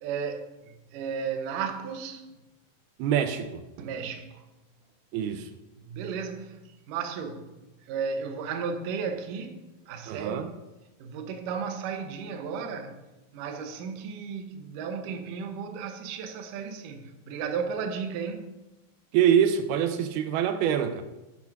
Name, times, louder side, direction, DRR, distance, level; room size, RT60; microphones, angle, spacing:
voice 1, 0.0-2.4 3.8-4.5 5.8-10.5 11.0-13.1 13.3-18.5, right 6 dB, 70° right, 2.4 m, -34 dB
voice 2, 3.0-3.6 5.1-5.5 10.1-10.5 19.1-21.0, right 9 dB, 85° right, 2.7 m, -25 dB
8.4 x 8.2 x 5.9 m
omnidirectional pair, 4.4 m